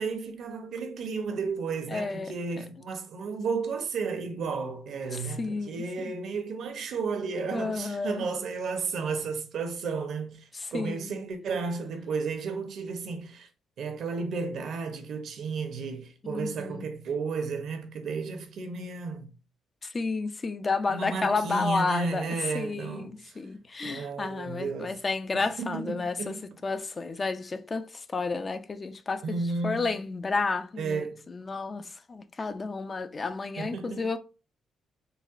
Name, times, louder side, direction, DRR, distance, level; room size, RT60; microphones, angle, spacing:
voice 1, 0.0-13.5 13.8-19.3 20.9-23.3 23.8-24.9 25.3-26.4 29.2-29.8 30.8-31.2 33.6-34.1, right 4 dB, 70° right, 0.7 m, -33 dB
voice 2, 1.9-2.3 5.1-6.1 7.5-8.2 10.5-11.2 16.2-16.9 19.8-34.2, left 4 dB, 30° left, 0.3 m, -31 dB
4.0 x 2.2 x 2.5 m
cardioid pair, 90°, 0 cm